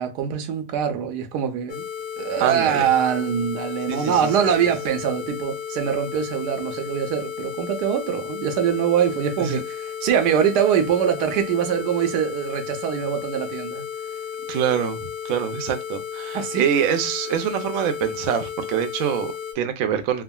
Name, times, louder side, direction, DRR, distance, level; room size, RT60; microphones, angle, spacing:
voice 1, 0.0-1.8 2.2-13.8 16.3-16.6, right 8 dB, 85° right, 1.2 m, -23 dB
sound 1, 1.7-19.5, left 8 dB, 85° left, 1.4 m, -33 dB
voice 2, 2.4-2.9 3.9-4.3 9.4-9.6 14.5-15.0 15.2-20.2, right 8 dB, 70° right, 0.8 m, -25 dB
3.5 x 2.1 x 2.2 m
omnidirectional pair, 1.7 m